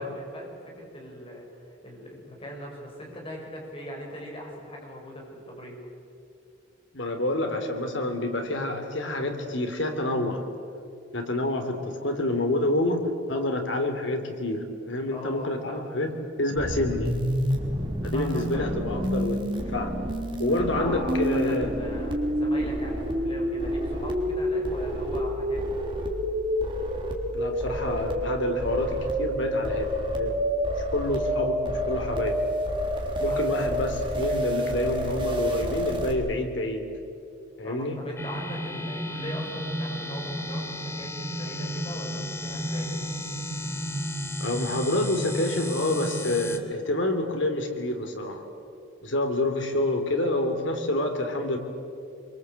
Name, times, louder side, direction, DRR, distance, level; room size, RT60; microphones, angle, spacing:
voice 1, 0.0-5.8 15.1-16.0 18.1-18.7 20.5-25.7 33.3-33.9 37.6-42.9, equal, 30° left, -1 dB, 6.9 m, -40 dB
voice 2, 6.9-10.5 11.1-13.0 13.3-16.1 16.4-17.1 18.0-20.0 20.4-21.7 27.3-30.5 30.9-32.4 33.2-36.9 37.6-38.0 44.4-48.4 49.0-51.6, left 1 dB, 75° left, 5 dB, 3.3 m, -28 dB
sound 1, 16.6-36.1, equal, 25° right, 3.5 m, -28 dB
sound 2, 38.2-46.6, equal, 15° left, 1.8 m, -33 dB
26.0 x 23.5 x 8.4 m, 2.6 s
head